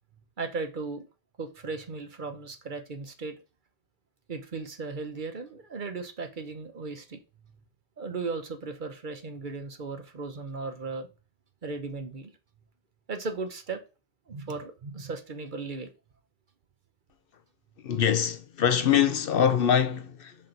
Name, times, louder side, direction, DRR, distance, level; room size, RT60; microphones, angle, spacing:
voice 1, 0.4-1.0 1.4-3.4 4.3-7.6 8.0-11.1 11.6-12.3 13.1-13.8 14.3-15.9, right 4 dB, 50° right, 1.0 m, -36 dB
voice 2, 17.8-20.4, left 8 dB, 60° left, 0.8 m, -24 dB
6.0 x 4.1 x 3.9 m
omnidirectional pair, 1.1 m